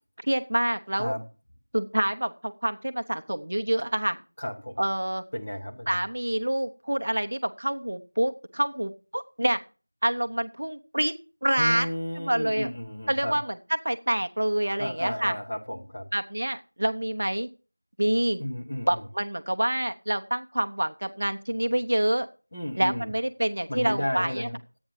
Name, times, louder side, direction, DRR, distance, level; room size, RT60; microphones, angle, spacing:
voice 1, 0.2-1.1 1.7-4.2 4.8-5.2 5.9-9.6 10.0-11.1 11.4-11.9 12.3-12.7 13.1-13.5 13.8-15.3 16.1-17.5 18.0-18.4 18.9-22.3 22.8-24.5, right 1 dB, 30° right, 7 dB, 0.6 m, -27 dB
voice 2, 4.4-4.8 5.3-6.0 11.6-13.4 14.8-16.1 18.4-19.0 22.5-23.1 23.7-24.8, left 1 dB, 10° left, -3 dB, 0.7 m, -33 dB
11.5 x 8.8 x 4.7 m, 0.35 s
figure-of-eight pair, 180°, 0 cm